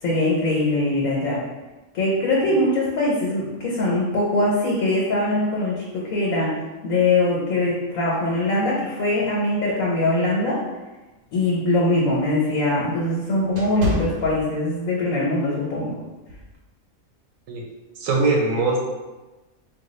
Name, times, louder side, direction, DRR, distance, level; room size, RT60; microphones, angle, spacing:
voice 1, 0.0-1.4 1.9-6.5 6.8-10.6 11.3-16.0, left 2 dB, 90° left, -5 dB, 1.1 m, -22 dB
sound 1, 11.3-15.0 15.4-15.7 16.3-16.6, left 1 dB, 55° right, 0.7 m, -30 dB
voice 2, 18.0-18.8, right 3 dB, 80° right, -1 dB, 1.0 m, -21 dB
3.3 x 2.2 x 3.1 m, 1.1 s
omnidirectional pair, 1.4 m